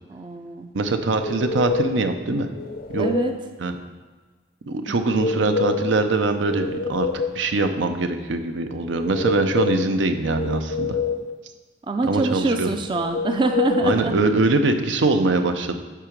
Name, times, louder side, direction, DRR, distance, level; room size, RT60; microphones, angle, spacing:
voice 1, 0.1-0.7 3.0-3.3 4.9-5.0 11.9-14.2, right 3 dB, 25° right, 6 dB, 0.4 m, -25 dB
voice 2, 0.7-2.5 2.9-3.1 3.6-3.8 4.7-7.1 7.3-11.0 12.1-12.7 13.8-15.8, right 3 dB, 80° right, 7 dB, 0.6 m, -22 dB
sound 1, 1.2-2.1 2.5-3.4 5.0-6.0 6.3-7.4 8.9-9.9 10.3-11.3 12.9-14.0, left 4 dB, 50° left, 0.5 m, -27 dB
7.5 x 4.8 x 5.1 m, 1.4 s
head